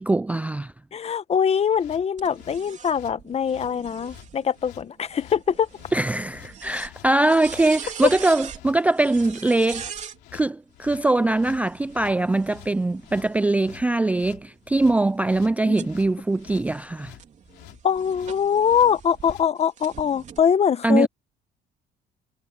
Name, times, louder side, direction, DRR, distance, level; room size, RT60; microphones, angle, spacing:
voice 1, 0.0-0.7 5.9-9.9 10.3-17.1 20.8-21.1, right 2 dB, 10° right, 0.3 m, -22 dB
voice 2, 0.9-5.7 15.6-15.7 17.8-21.1, left 7 dB, 40° left, 1.1 m, -23 dB
sound 1, 1.7-19.5, left 16 dB, 85° left, 2.9 m, -49 dB
sound 2, 2.2-10.2 11.3-13.7 14.3-19.3 19.8-20.4, right 7 dB, 45° right, 3.3 m, -42 dB
cardioid pair, 110°, 17 cm